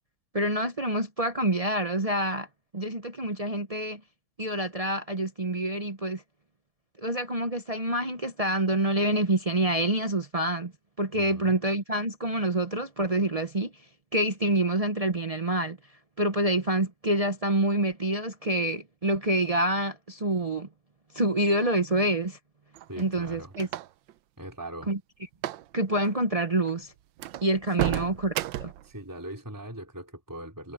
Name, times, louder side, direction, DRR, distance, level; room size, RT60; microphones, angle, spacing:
voice 1, 0.3-2.5 2.7-4.0 4.4-6.2 7.0-10.7 11.0-13.7 14.1-15.8 16.2-20.7 21.1-22.4 23.0-23.7 24.9-25.0 25.7-26.9 27.4-28.3 28.6-28.7, right 1 dB, 40° right, 0.5 m, -27 dB
voice 2, 11.1-11.6 22.9-23.5 24.4-24.9 27.8-28.2 28.8-30.7, right 1 dB, 10° right, 4.2 m, -41 dB
sound 1, 22.8-24.1 25.3-25.7 25.9-26.1 26.7-26.8 27.2-28.9, right 13 dB, 75° right, 1.4 m, -32 dB
omnidirectional pair, 2.1 m